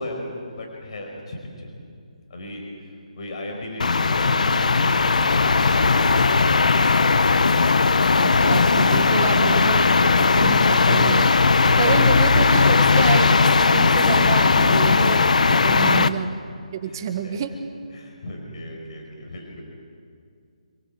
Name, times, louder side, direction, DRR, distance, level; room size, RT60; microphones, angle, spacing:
voice 1, 0.0-1.7 2.3-6.6 15.4-16.0 16.8-17.4 17.9-19.6, left 1 dB, 55° left, 1 dB, 5.1 m, -35 dB
sound 1, 3.8-16.1, left 4 dB, 75° left, 1.0 m, -17 dB
Liquid, 5.0-11.8, right 2 dB, 15° right, 5.5 m, -44 dB
voice 2, 8.4-11.4 11.8-16.3 16.8-17.6, right 7 dB, 35° right, 8 dB, 1.3 m, -28 dB
26.5 x 19.5 x 7.6 m, 2.3 s
hypercardioid pair, 160°, 4 cm